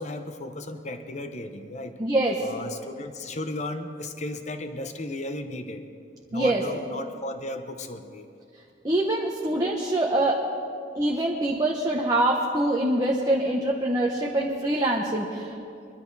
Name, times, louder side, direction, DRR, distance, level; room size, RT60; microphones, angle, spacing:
voice 1, 0.0-1.9 2.4-5.8 6.3-8.3, left 1 dB, 35° left, 7 dB, 0.9 m, -35 dB
voice 2, 2.0-2.5 6.3-6.6 8.8-10.4 10.9-15.6, right 1 dB, 20° right, -1 dB, 1.0 m, -24 dB
22.5 x 12.5 x 4.1 m, 2.5 s
head